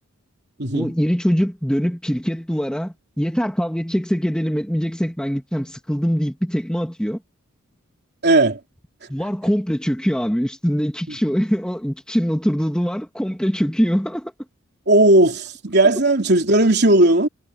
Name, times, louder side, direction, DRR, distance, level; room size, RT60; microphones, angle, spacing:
voice 1, 0.7-7.2 9.1-14.3, equal, 5° left, 1.9 m, -23 dB
voice 2, 8.2-8.6 14.9-17.3, right 2 dB, 50° right, 3.6 m, -16 dB
head